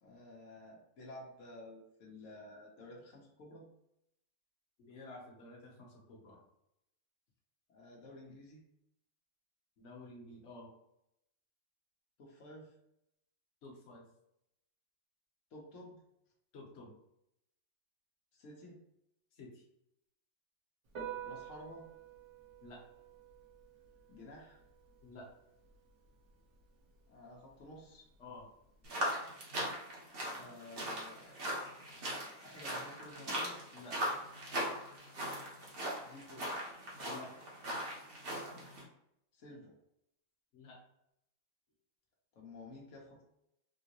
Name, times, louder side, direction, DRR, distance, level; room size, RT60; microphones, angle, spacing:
voice 1, 0.0-3.6 7.7-8.6 12.2-12.7 15.5-16.0 18.3-18.8 21.2-21.8 24.1-24.6 27.1-28.0 30.3-31.4 32.4-33.6 36.0-36.6 39.3-39.7 42.3-43.2, left 1 dB, 90° left, -2 dB, 1.2 m, -52 dB
voice 2, 4.8-6.4 9.8-10.7 13.6-14.0 16.5-16.9 19.3-19.6 22.6-22.8 25.0-25.3 28.2-28.5 33.7-34.0 37.0-37.3 40.5-40.8, left 2 dB, 65° left, -2 dB, 1.2 m, -51 dB
Piano, 20.8-28.8, right 9 dB, 75° right, 1.3 m, -51 dB
sound 1, 28.8-38.8, equal, 50° right, 1.1 m, -40 dB
3.6 x 2.7 x 2.8 m, 0.80 s
omnidirectional pair, 1.3 m